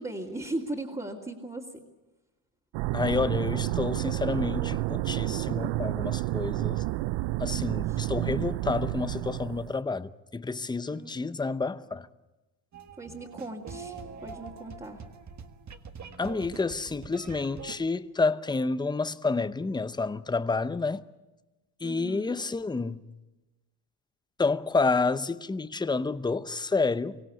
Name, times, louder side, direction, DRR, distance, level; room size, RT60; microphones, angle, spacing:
voice 1, 0.0-1.8 7.6-8.0 10.9-11.1 13.0-15.1 21.8-22.4, right 2 dB, 15° right, 2.8 m, -38 dB
sound 1, 2.7-9.8, right 18 dB, 75° right, 0.7 m, -30 dB
voice 2, 2.9-6.8 7.4-12.1 16.2-21.1 21.8-23.1 24.4-27.2, left 3 dB, 10° left, 0.7 m, -29 dB
sound 2, 12.7-17.8, right 5 dB, 35° right, 1.7 m, -44 dB
24.5 x 16.5 x 8.4 m
cardioid pair, 105°, 48 cm